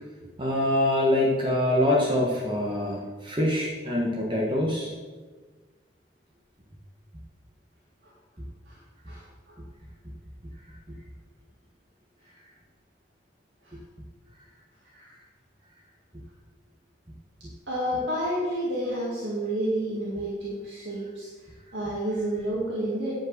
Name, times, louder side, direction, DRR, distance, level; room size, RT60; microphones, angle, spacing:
voice 1, 0.4-4.9, left 1 dB, 25° right, -2 dB, 1.3 m, -24 dB
voice 2, 9.1-9.5 13.6-13.8 14.9-15.1 17.7-23.1, right 1 dB, 75° right, -6 dB, 2.2 m, -30 dB
10.5 x 5.4 x 6.7 m, 1.4 s
head